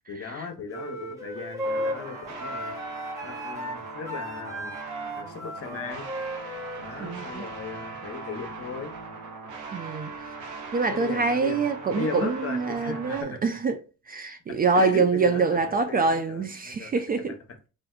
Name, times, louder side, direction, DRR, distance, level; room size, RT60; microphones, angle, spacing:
voice 1, 0.1-2.8 3.2-4.7 5.1-6.1 6.8-8.9 10.9-11.7 11.9-13.4 14.5-16.9, left 5 dB, 50° left, 0.9 m, -37 dB
sound 1, 0.7-7.2, equal, 10° right, 1.0 m, -35 dB
sound 2, 1.3-13.2, right 4 dB, 90° right, 0.7 m, -40 dB
voice 2, 7.0-7.5 9.7-10.1 10.7-13.8 14.1-17.4, right 4 dB, 30° right, 0.4 m, -25 dB
3.4 x 2.5 x 2.3 m
cardioid pair, 90°, 30 cm